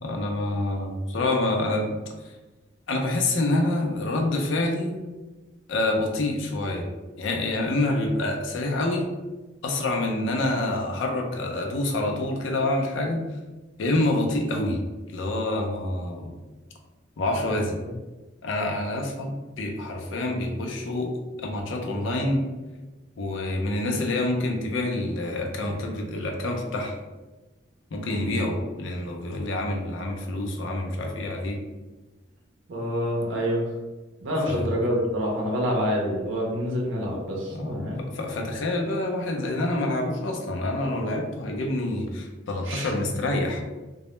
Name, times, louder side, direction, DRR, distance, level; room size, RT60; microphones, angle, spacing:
voice 1, 0.0-2.0 2.9-4.9 5.7-6.9 7.2-9.1 9.6-13.2 13.8-14.8 15.1-16.3 17.2-17.8 18.4-21.1 21.4-22.5 23.2-27.0 27.9-31.6 34.5-34.7 37.5-43.6, left 2 dB, 75° left, 2 dB, 0.4 m, -27 dB
voice 2, 32.7-33.6 34.2-38.0 42.6-42.9, equal, 75° right, -2 dB, 0.6 m, -27 dB
2.1 x 2.0 x 2.9 m, 1.2 s
head